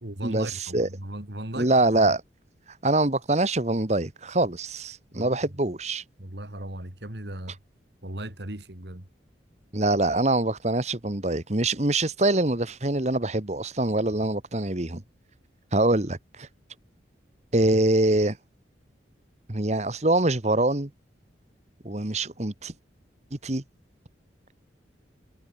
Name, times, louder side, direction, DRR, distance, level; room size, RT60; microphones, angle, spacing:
voice 1, 0.0-2.1 5.1-5.4 6.2-7.6 8.0-9.1, right 1 dB, 65° right, 3.1 m, -37 dB
voice 2, 1.6-2.2 2.8-6.0 9.7-15.0 15.7-16.5 17.5-18.4 19.5-20.9 21.8-22.7 23.3-23.6, right 2 dB, 35° right, 1.5 m, -24 dB
head